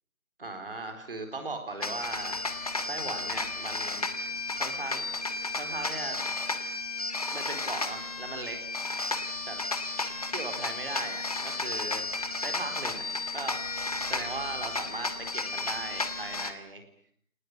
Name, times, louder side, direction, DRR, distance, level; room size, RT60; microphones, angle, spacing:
voice 1, 0.4-2.4 2.9-4.1 4.5-5.1 5.5-6.2 7.3-8.6 9.5-9.6 10.3-13.0 13.3-13.6 14.0-16.8, right 3 dB, 40° right, 6 dB, 4.3 m, -38 dB
sound 1, 1.8-16.5, left 3 dB, 25° left, 1.4 m, -33 dB
26.0 x 19.5 x 9.3 m, 0.63 s
figure-of-eight pair, 165°, 41 cm